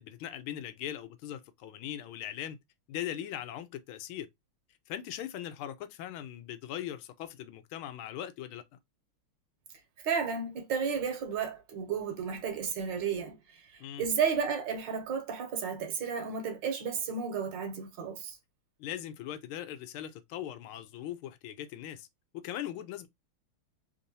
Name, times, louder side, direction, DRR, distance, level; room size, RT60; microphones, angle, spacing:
voice 1, 0.0-2.6 2.9-4.3 4.9-8.6 13.8-14.1 18.8-22.1 22.3-23.1, left 11 dB, 80° left, 1.4 m, -40 dB
voice 2, 10.0-18.4, right 6 dB, 70° right, 1.4 m, -33 dB
3.6 x 2.6 x 2.6 m
omnidirectional pair, 2.3 m